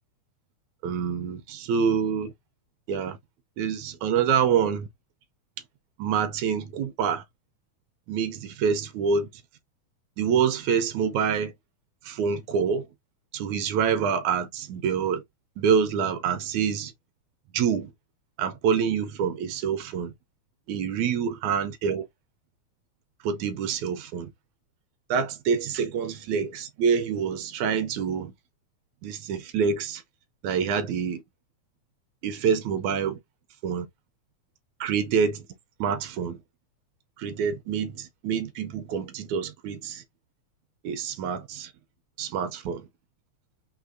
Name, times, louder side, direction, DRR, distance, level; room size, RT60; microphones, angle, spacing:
voice 1, 0.8-2.3 2.9-3.2 3.6-4.9 6.0-7.2 8.1-9.3 10.2-11.5 12.0-12.9 13.3-15.2 15.6-16.9 17.5-17.9 18.4-20.1 20.7-22.0 23.2-24.3 25.1-28.3 29.0-30.0 30.4-31.2 32.2-33.2 33.6-33.9 34.8-35.4 35.8-36.4 37.2-40.0 40.8-41.7 42.2-42.9, right 7 dB, 80° right, 1.8 m, -26 dB
6.3 x 2.6 x 2.5 m
omnidirectional pair, 3.6 m